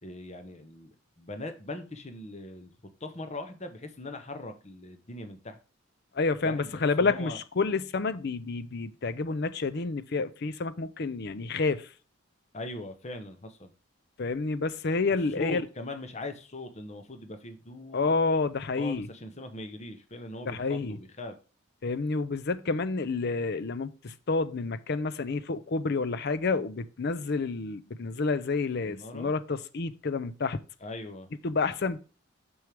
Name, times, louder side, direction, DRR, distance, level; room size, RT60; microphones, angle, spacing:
voice 1, 0.0-2.7 3.0-5.6 6.4-7.4 12.5-13.7 15.3-18.2 18.8-21.4 28.8-29.3 30.8-31.3, left 2 dB, 35° left, 0.9 m, -40 dB
voice 2, 6.2-11.8 14.2-15.6 17.9-19.1 20.5-21.0 21.8-30.6 31.4-32.0, left 4 dB, 50° left, 0.5 m, -29 dB
6.3 x 6.3 x 3.4 m
head